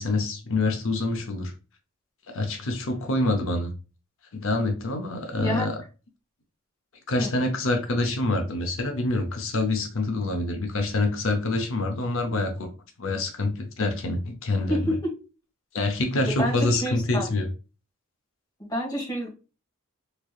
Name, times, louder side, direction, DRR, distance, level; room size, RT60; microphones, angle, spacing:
voice 1, 0.0-1.5 2.3-3.7 4.3-5.8 7.1-12.7 13.0-14.9 15.7-17.5, left 2 dB, 60° left, 0.6 m, -26 dB
voice 2, 14.7-15.1 16.4-17.3 18.6-19.3, equal, 20° left, 1.3 m, -28 dB
3.7 x 3.2 x 2.3 m
head